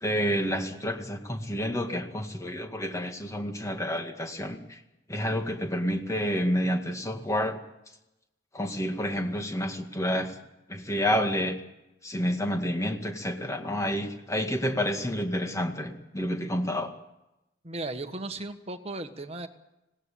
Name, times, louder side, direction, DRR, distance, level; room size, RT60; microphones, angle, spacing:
voice 1, 0.0-4.8 5.1-7.6 8.5-10.4 10.7-11.6 12.0-16.9, equal, 15° left, 5 dB, 2.0 m, -29 dB
voice 2, 17.6-19.5, right 2 dB, 30° right, 7 dB, 1.5 m, -36 dB
20.0 x 17.5 x 8.7 m, 0.91 s
head